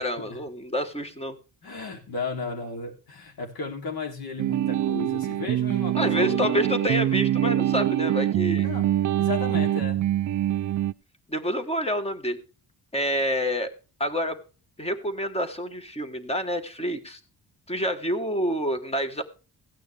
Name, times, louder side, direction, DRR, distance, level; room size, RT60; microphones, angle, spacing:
voice 1, 0.0-1.4 6.0-8.7 11.3-12.4 12.9-13.7 14.0-14.4 14.8-17.2 17.7-19.2, equal, 15° left, 9 dB, 1.5 m, -28 dB
voice 2, 1.6-6.7 8.6-8.9 9.2-10.1, left 4 dB, 75° left, 2 dB, 3.3 m, -34 dB
sound 1, 4.4-10.9, right 12 dB, 55° right, 0.5 m, -24 dB
15.5 x 9.2 x 3.4 m, 0.34 s
wide cardioid pair, 160°, 37 cm